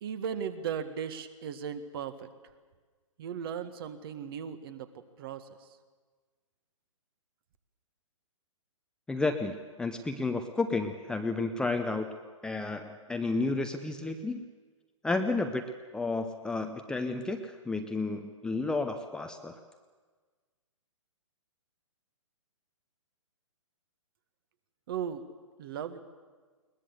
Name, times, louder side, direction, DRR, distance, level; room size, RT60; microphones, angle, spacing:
voice 1, 0.0-2.3 3.2-5.5 24.9-25.2 25.6-26.0, right 7 dB, 45° right, 11 dB, 1.6 m, -37 dB
voice 2, 9.1-12.1 12.4-14.5 15.0-15.6 15.9-19.6, left 3 dB, 5° left, 5 dB, 0.7 m, -31 dB
21.5 x 20.0 x 8.1 m, 1.4 s
figure-of-eight pair, 125°, 17 cm